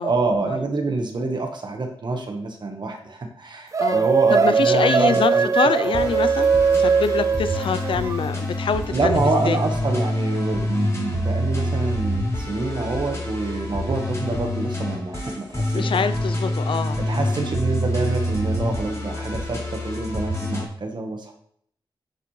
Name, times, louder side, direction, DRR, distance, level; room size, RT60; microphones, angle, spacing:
voice 1, 0.0-5.5 5.8-6.1 8.9-15.9 17.1-21.3, right 3 dB, 55° right, 3 dB, 1.3 m, -26 dB
sound 1, 3.7-8.2, right 5 dB, 35° right, 0.3 m, -20 dB
voice 2, 4.3-6.5 6.8-9.2 9.4-9.6 15.7-17.0, left 6 dB, 65° left, 12 dB, 0.5 m, -25 dB
sound 2, 4.8-5.2 5.9-20.7, left 1 dB, 35° left, 3.1 m, -27 dB
10.0 x 6.9 x 3.2 m, 0.65 s
wide cardioid pair, 100°, 9 cm